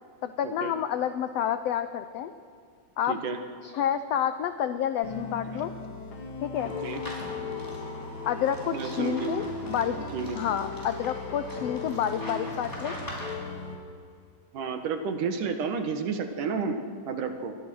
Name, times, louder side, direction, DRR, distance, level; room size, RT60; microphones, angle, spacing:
voice 1, 0.2-2.3 3.0-3.1 3.6-5.7 6.4-6.7 8.2-10.0 10.3-12.9, left 9 dB, 75° left, 10 dB, 1.5 m, -29 dB
voice 2, 3.1-3.4 6.6-7.0 8.7-9.3 10.1-10.4 14.5-16.8 17.1-17.5, right 5 dB, 75° right, 6 dB, 3.1 m, -31 dB
sound 1, 5.0-13.8, left 3 dB, 45° left, 2.6 m, -37 dB
sound 2, 6.5-13.3, equal, 5° left, 5.2 m, -42 dB
28.0 x 22.5 x 6.3 m, 2.2 s
omnidirectional pair, 3.7 m